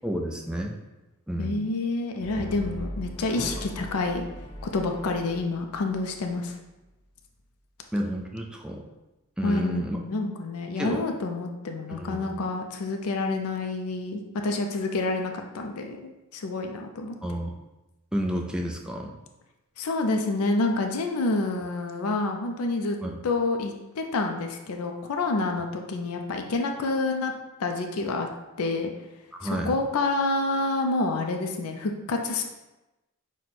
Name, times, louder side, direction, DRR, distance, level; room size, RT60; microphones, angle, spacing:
voice 1, 0.0-0.8 1.3-1.6 3.3-3.7 7.9-8.8 9.4-10.0 10.8-11.0 11.9-12.4 17.2-17.5 18.1-19.1 23.0-23.2 29.4-29.8, equal, 5° right, 0 dB, 0.4 m, -31 dB
voice 2, 1.4-4.3 4.6-6.6 9.4-17.2 19.8-23.0 23.2-27.3 27.6-28.3 28.6-28.9 29.4-32.4, left 3 dB, 75° left, 3 dB, 0.5 m, -28 dB
Brass instrument, 2.2-6.5, equal, 20° left, 0.9 m, -39 dB
6.0 x 2.2 x 4.0 m, 1.0 s
head